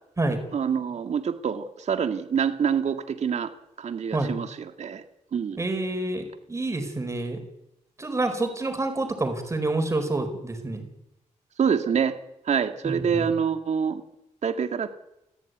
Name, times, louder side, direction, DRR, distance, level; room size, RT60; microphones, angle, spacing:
voice 1, 0.5-3.5 3.8-4.5 4.8-5.0 5.3-5.6 11.6-12.2 12.5-14.0 14.4-14.9, right 7 dB, 60° right, 8 dB, 2.2 m, -26 dB
voice 2, 5.6-7.4 8.0-10.8 12.8-13.3, right 2 dB, 20° right, 6 dB, 4.8 m, -28 dB
29.5 x 15.0 x 9.4 m, 0.90 s
wide cardioid pair, 140°, 13 cm